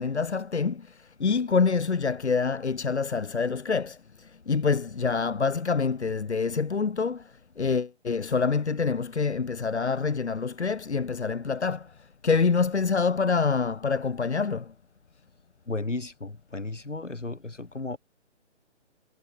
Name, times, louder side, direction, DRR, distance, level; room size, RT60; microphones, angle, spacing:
voice 1, 0.0-14.7, left 5 dB, 65° left, 1.3 m, -26 dB
voice 2, 15.7-18.0, left 2 dB, 80° left, 2.7 m, -34 dB
figure-of-eight pair, 140°, 36 cm